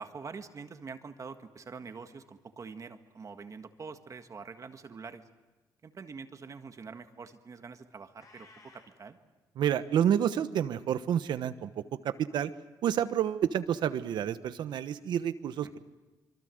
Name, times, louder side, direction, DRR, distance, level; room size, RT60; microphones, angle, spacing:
voice 1, 0.0-5.3 5.8-9.2, right 5 dB, 45° right, 7 dB, 1.7 m, -45 dB
Meow, 8.1-9.0, left 3 dB, 50° left, 6.6 m, -56 dB
voice 2, 9.6-12.5 12.8-15.8, right 9 dB, 85° right, 12 dB, 1.1 m, -29 dB
25.5 x 24.0 x 7.9 m, 1.2 s
cardioid pair, 85°, 8 cm